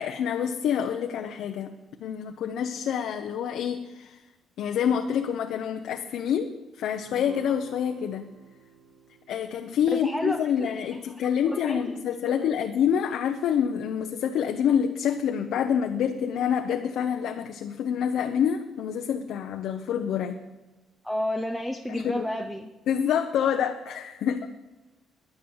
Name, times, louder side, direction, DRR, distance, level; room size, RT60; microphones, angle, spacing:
voice 1, 0.0-1.7 2.0-4.2 4.6-6.5 6.8-8.2 9.3-20.4 21.9-22.2 22.9-24.5, left 8 dB, 75° left, 4 dB, 0.8 m, -27 dB
Guitar, 7.0-11.7, right 4 dB, 90° right, 2.9 m, -52 dB
voice 2, 9.9-11.0 11.4-12.7 21.0-22.7, left 1 dB, ahead, 4 dB, 0.8 m, -32 dB
10.5 x 10.0 x 7.3 m, 1.1 s
cardioid pair, 120°, 0 cm